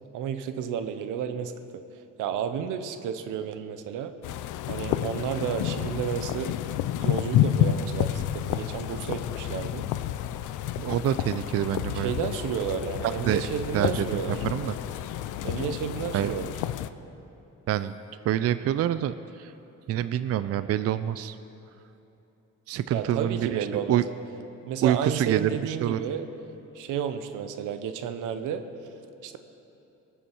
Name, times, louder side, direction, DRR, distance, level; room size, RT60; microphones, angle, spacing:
voice 1, 0.1-1.8 2.2-4.1 4.7-6.6 7.0-9.9 11.9-14.4 15.4-16.5 22.9-24.1 24.6-26.3 26.7-28.6 29.2-29.4, right 8 dB, 90° right, 9 dB, 0.8 m, -31 dB
sound 1, 4.2-16.9, left 11 dB, 80° left, 0.5 m, -30 dB
voice 2, 10.8-12.1 13.3-13.4 13.7-14.7 16.1-16.3 17.7-17.9 18.2-19.5 19.9-21.4 22.7-24.0 24.8-26.0, right 11 dB, 55° right, 13 dB, 0.4 m, -26 dB
19.5 x 7.2 x 4.6 m, 2.9 s
cardioid pair, 90°, 30 cm